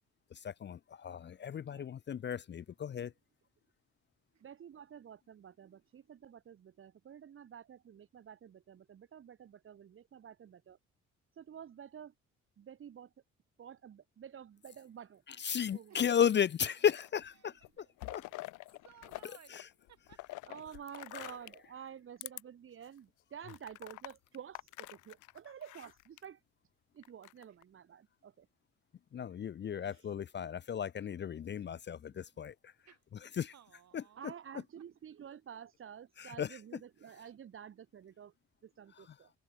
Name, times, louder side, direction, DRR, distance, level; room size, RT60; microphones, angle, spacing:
voice 1, 0.3-3.1 15.3-17.8 18.1-18.2 19.2-19.7 21.1-21.4 29.1-32.7 33.2-33.5 33.9-34.3 36.2-36.6 38.9-39.2, left 8 dB, 35° left, 0.5 m, -35 dB
voice 2, 4.4-10.8 11.3-12.1 12.6-13.1 13.6-15.2 15.7-16.0 20.4-26.4 26.9-28.5 29.8-30.1 34.2-38.3 38.6-39.3, right 8 dB, 45° right, 0.9 m, -50 dB
sound 1, 16.6-17.3 17.6-19.3 19.5-21.7 22.2-22.4 22.9-23.0 23.5-26.2 27.0-27.6, left 19 dB, 90° left, 0.6 m, -47 dB
voice 3, 18.8-19.6 19.9-20.2 27.5-27.6 32.8-33.0 33.5-34.2, right 10 dB, 65° right, 3.0 m, -60 dB
cardioid pair, 90°, 30 cm